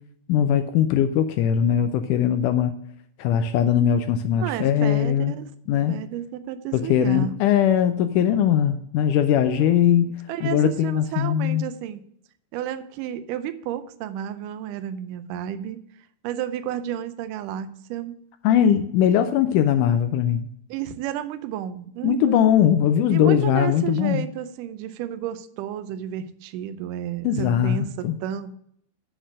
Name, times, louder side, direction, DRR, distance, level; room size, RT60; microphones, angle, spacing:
voice 1, 0.3-2.7 3.2-5.3 5.7-6.0 6.7-10.2 10.4-11.6 18.4-20.5 22.0-24.3 27.2-28.2, left 9 dB, 80° left, 9 dB, 1.9 m, -20 dB
voice 2, 4.4-5.5 5.9-7.4 9.5-10.0 10.3-12.0 12.5-15.8 16.2-18.2 20.7-22.6 23.1-28.5, right 10 dB, 80° right, 10 dB, 2.1 m, -32 dB
8.1 x 6.2 x 6.3 m, 0.68 s
omnidirectional pair, 4.1 m